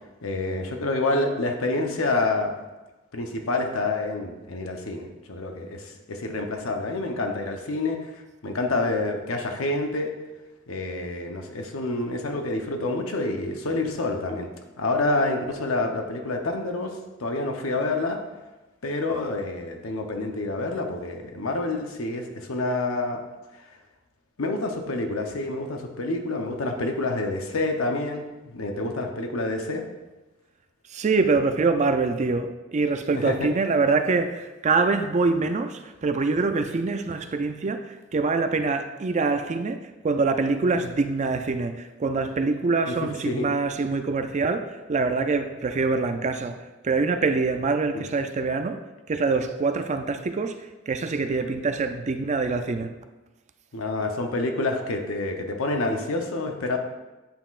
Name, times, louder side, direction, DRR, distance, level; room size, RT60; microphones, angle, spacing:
voice 1, 0.2-2.5 3.1-10.1 10.7-14.5 14.8-18.2 18.8-23.2 23.6-23.7 24.4-29.8 33.1-33.5 42.9-43.5 47.9-48.0 53.7-56.8, left 2 dB, 85° left, 4 dB, 0.8 m, -28 dB
voice 2, 30.9-46.6 46.8-48.8 49.1-50.6 50.9-52.9, right 3 dB, 35° right, 8 dB, 0.4 m, -25 dB
8.7 x 5.7 x 2.4 m, 1.1 s
head